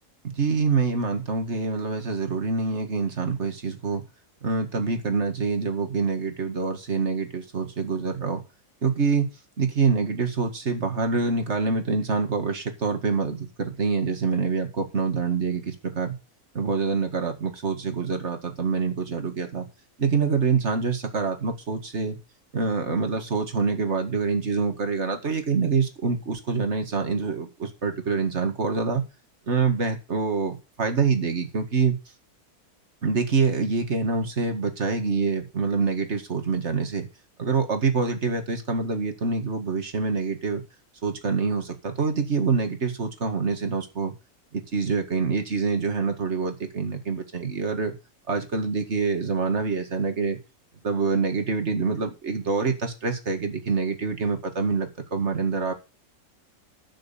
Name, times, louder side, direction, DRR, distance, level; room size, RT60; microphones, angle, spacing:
voice 1, 0.3-4.0 4.4-8.4 8.8-9.3 9.6-16.2 16.5-19.7 20.0-22.2 22.5-29.0 29.5-32.0 33.0-37.1 37.4-40.6 41.0-44.1 44.5-47.9 48.3-50.4 50.8-55.7, right 4 dB, 50° right, 6 dB, 2.2 m, -26 dB
11.5 x 6.3 x 7.0 m, 0.29 s
omnidirectional pair, 1.6 m